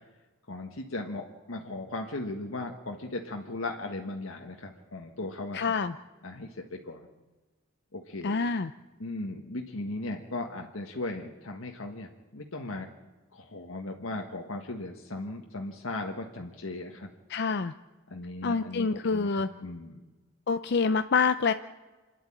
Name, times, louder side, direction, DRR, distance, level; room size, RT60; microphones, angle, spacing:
voice 1, 0.5-5.7 6.2-7.1 7.9-8.3 9.0-12.9 13.3-17.1 18.1-20.0, left 2 dB, 85° left, 1 dB, 1.6 m, -37 dB
voice 2, 5.5-5.9 8.2-8.7 17.3-17.7 18.4-19.5 20.5-21.5, left 5 dB, 55° left, 10 dB, 0.5 m, -26 dB
27.0 x 11.0 x 8.8 m, 1.3 s
head